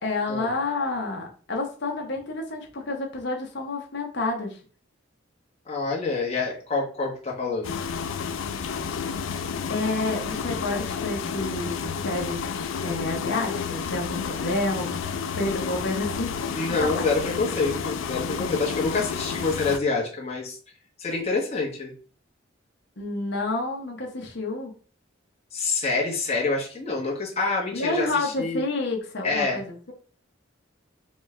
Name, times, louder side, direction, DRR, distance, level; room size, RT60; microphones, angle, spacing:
voice 1, 0.0-4.6 9.7-16.3 16.8-17.0 23.0-24.7 27.7-29.9, left 2 dB, 65° left, 1 dB, 1.0 m, -29 dB
voice 2, 5.7-7.7 16.5-20.6 21.0-21.9 25.5-28.6 29.2-29.6, left 3 dB, 35° left, -3 dB, 1.2 m, -27 dB
sound 1, 7.6-19.8, left 6 dB, 80° left, 0.4 m, -31 dB
4.3 x 2.4 x 3.2 m, 0.41 s
head